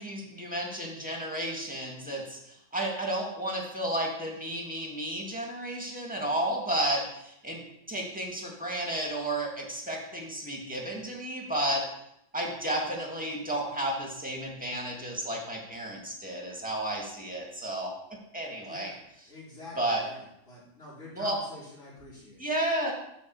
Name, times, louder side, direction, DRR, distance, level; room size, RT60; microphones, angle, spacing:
voice 1, 0.0-7.6 7.9-11.8 12.3-17.9 18.3-18.9 19.8-20.0 21.1-21.4 22.4-22.9, right 1 dB, 5° right, -1 dB, 2.0 m, -32 dB
voice 2, 18.6-19.0 19.3-22.5, left 2 dB, 70° left, -8 dB, 3.6 m, -47 dB
7.1 x 5.9 x 7.1 m, 0.79 s
omnidirectional pair, 1.3 m